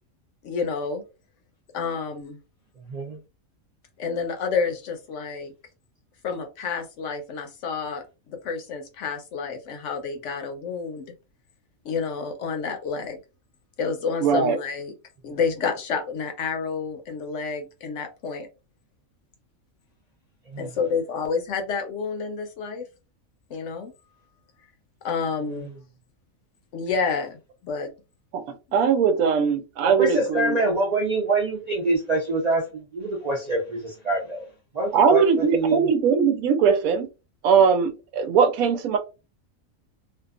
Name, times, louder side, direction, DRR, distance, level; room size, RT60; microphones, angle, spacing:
voice 1, 0.4-1.0 1.7-2.4 4.0-5.5 6.2-8.0 8.3-11.1 11.8-13.2 13.8-14.9 15.2-18.5 20.6-22.9 23.5-23.9 25.0-25.7 26.7-27.9, left 5 dB, 70° left, 0.8 m, -29 dB
voice 2, 2.9-3.2 20.5-20.7 25.5-25.7 29.8-34.5 34.7-35.9, right 2 dB, 55° right, 0.4 m, -25 dB
voice 3, 14.2-14.6 28.3-30.5 34.9-37.1 37.4-39.0, right 6 dB, 85° right, 1.0 m, -20 dB
2.6 x 2.3 x 2.3 m
omnidirectional pair, 1.5 m